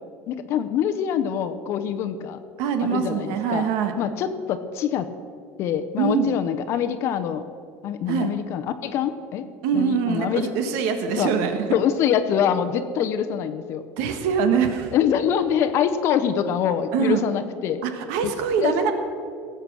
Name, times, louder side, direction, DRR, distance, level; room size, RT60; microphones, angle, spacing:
voice 1, 0.3-2.4 2.8-3.7 4.0-5.1 5.6-7.4 7.8-9.4 9.7-10.5 11.2-11.3 11.7-13.8 14.9-17.8 18.2-18.3 18.6-18.9, left 8 dB, 45° left, 10 dB, 0.7 m, -24 dB
voice 2, 2.6-3.9 6.0-6.3 8.1-8.3 9.6-11.8 14.0-14.9 16.9-17.3 17.8-18.9, right 6 dB, 70° right, 7 dB, 1.5 m, -23 dB
17.5 x 7.9 x 6.1 m, 2.4 s
cardioid pair, 160°, 6 cm